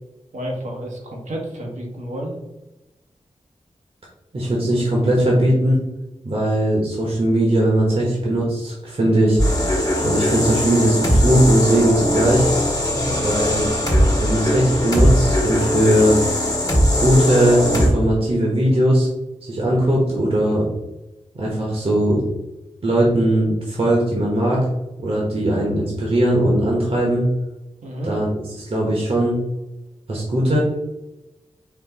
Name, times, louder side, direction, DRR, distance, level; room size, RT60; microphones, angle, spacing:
voice 1, 0.3-2.4 12.9-13.2 27.8-28.1, equal, 85° right, -1 dB, 1.3 m, -30 dB
voice 2, 4.3-5.8 6.2-9.4 10.0-12.5 13.2-13.6 14.2-16.2 17.0-19.1 19.4-20.7 21.3-22.2 22.8-24.7 25.0-27.3 28.0-28.3 28.7-29.4 30.1-30.6, right 1 dB, 50° right, -3 dB, 1.2 m, -19 dB
sound 1, 9.4-17.9, equal, 30° left, 1.3 m, -20 dB
4.4 x 2.7 x 4.1 m, 1.0 s
cardioid pair, 60°, 12 cm